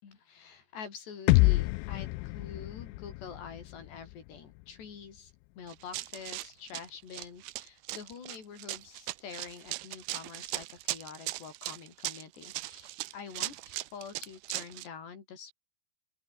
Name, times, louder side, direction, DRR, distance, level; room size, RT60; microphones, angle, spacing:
voice 1, 0.0-15.5, left 6 dB, 70° left, 6.5 m, -46 dB
sound 1, 1.3-5.2, left 22 dB, 90° left, 3.0 m, -28 dB
Run, 5.7-14.9, right 18 dB, 80° right, 2.3 m, -38 dB
open air
omnidirectional pair, 5.1 m